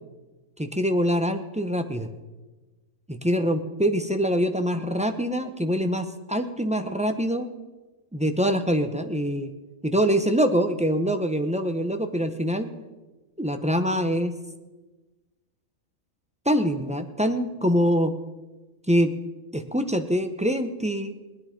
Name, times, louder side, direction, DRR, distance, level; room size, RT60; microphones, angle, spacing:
voice 1, 0.6-2.1 3.1-7.5 8.1-9.5 9.8-12.7 13.4-14.3 16.5-18.1 18.9-19.1 19.5-21.2, equal, 10° right, 7 dB, 0.5 m, -24 dB
19.5 x 9.9 x 5.1 m, 1.2 s
omnidirectional pair, 1.4 m